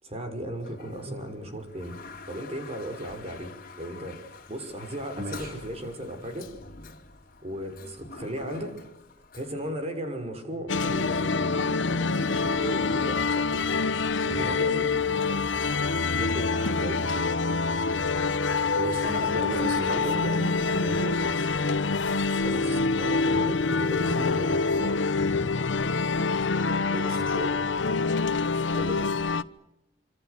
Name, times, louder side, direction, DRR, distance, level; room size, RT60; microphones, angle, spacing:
voice 1, 0.0-2.0 2.3-6.5 7.4-8.7 9.3-13.6 14.2-15.4 16.1-17.4 22.4-25.0 28.7-29.1, equal, 35° right, 6 dB, 6.0 m, -36 dB
Toilet flush, 0.6-9.7, left 4 dB, 50° left, 3.4 m, -47 dB
voice 2, 5.2-5.5 14.2-14.6 18.8-21.5 26.9-27.7, right 1 dB, 50° right, 3 dB, 3.4 m, -34 dB
sound 1, 10.7-29.4, left 4 dB, 85° left, 1.0 m, -26 dB
27.0 x 26.0 x 6.8 m, 0.89 s
head